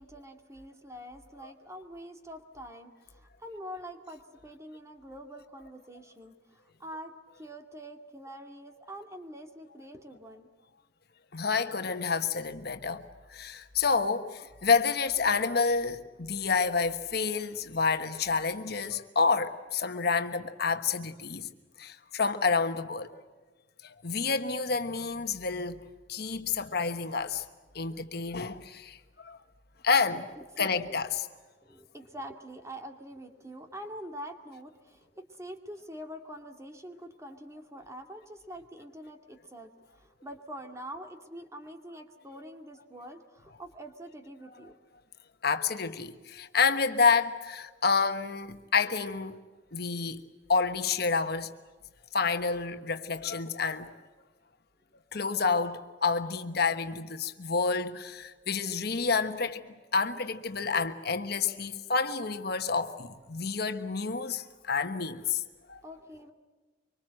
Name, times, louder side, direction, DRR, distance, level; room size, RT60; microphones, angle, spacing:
voice 1, 0.0-10.5 30.3-31.0 31.7-44.7 65.8-66.3, equal, 15° right, 2.3 m, -45 dB
voice 2, 11.3-21.5 21.8-23.3 23.8-25.8 26.1-27.4 27.7-29.4 29.8-30.3 30.6-31.3 45.4-49.4 49.7-50.2 50.5-51.5 52.1-54.0 55.1-65.4 65.7-65.8, left 5 dB, 60° left, 1.3 m, -29 dB
25.0 x 25.0 x 7.7 m
head